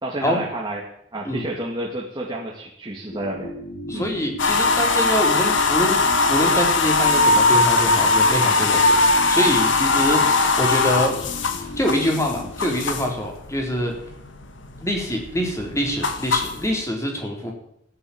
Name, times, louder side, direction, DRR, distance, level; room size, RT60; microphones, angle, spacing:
voice 1, 0.0-3.5 3.9-4.1, right 1 dB, 25° right, -3 dB, 2.5 m, -30 dB
sound 1, 3.1-13.0, left 1 dB, 35° left, 2.4 m, -36 dB
voice 2, 3.9-6.0 6.3-9.0 9.3-11.1 11.6-13.9 14.8-17.5, equal, 15° left, 1 dB, 4.0 m, -25 dB
sound 2, 4.4-13.2 13.6-14.3 14.6-16.7, left 3 dB, 80° left, 1.9 m, -19 dB
14.5 x 10.5 x 8.9 m, 0.75 s
head